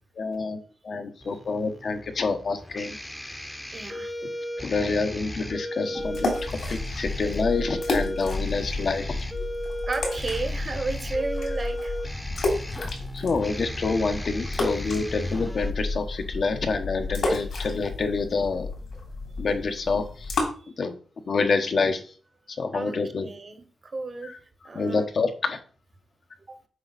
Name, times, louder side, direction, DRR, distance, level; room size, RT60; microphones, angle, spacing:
voice 1, 0.2-0.6 0.8-3.0 4.2-4.3 4.6-9.2 13.1-18.7 19.4-20.3 20.8-20.9 21.3-22.1 22.6-23.3 24.2-24.4 24.7-25.6, left 4 dB, 55° left, 6 dB, 1.1 m, -27 dB
sound 1, 1.2-15.7, equal, 10° left, 0.9 m, -35 dB
voice 2, 3.7-4.1 5.9-6.0 9.9-12.0 22.7-22.9 23.2-24.4 24.6-25.1 26.5-26.6, right 3 dB, 35° right, 8 dB, 1.2 m, -33 dB
sound 2, 6.0-20.4, left 2 dB, 70° left, 3.2 m, -31 dB
7.7 x 5.3 x 4.1 m, 0.41 s
wide cardioid pair, 115°, 0 cm